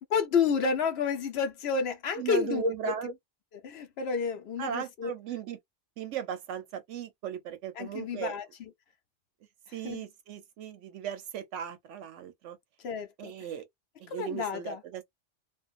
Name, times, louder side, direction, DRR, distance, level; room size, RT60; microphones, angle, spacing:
voice 1, 0.1-2.7 3.6-5.1 7.8-8.7 9.8-10.0 12.8-13.3 14.1-14.8, left 6 dB, 65° left, 0.8 m, -30 dB
voice 2, 2.2-3.2 4.6-5.6 6.0-8.4 9.7-12.6 13.2-13.7 14.0-15.0, right 9 dB, 85° right, 1.0 m, -37 dB
2.5 x 2.1 x 2.4 m
omnidirectional pair, 1.2 m